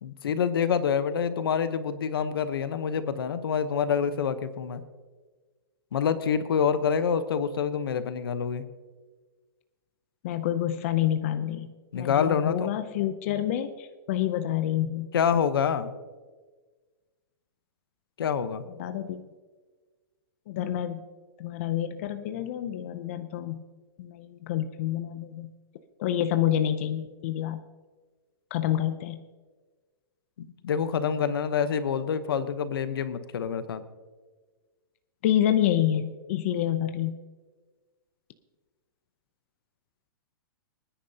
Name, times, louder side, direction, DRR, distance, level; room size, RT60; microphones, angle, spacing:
voice 1, 0.0-4.8 5.9-8.6 11.9-12.6 15.1-15.9 18.2-18.6 30.6-33.8, left 7 dB, 80° left, 12 dB, 1.0 m, -26 dB
voice 2, 10.2-11.7 11.9-15.1 18.8-19.3 20.5-21.0 21.4-23.6 24.0-25.5 26.0-27.6 28.5-29.2 35.2-37.2, left 11 dB, 35° left, 9 dB, 0.5 m, -28 dB
24.5 x 10.0 x 2.8 m, 1.4 s
hypercardioid pair, 170°, 12 cm